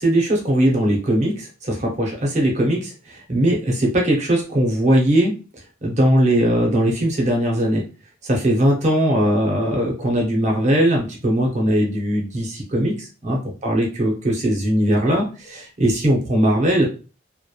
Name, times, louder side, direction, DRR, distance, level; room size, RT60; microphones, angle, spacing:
voice 1, 0.0-5.3 5.8-7.8 8.2-16.9, right 1 dB, 35° right, 0 dB, 0.6 m, -19 dB
2.8 x 2.0 x 2.2 m, 0.33 s
head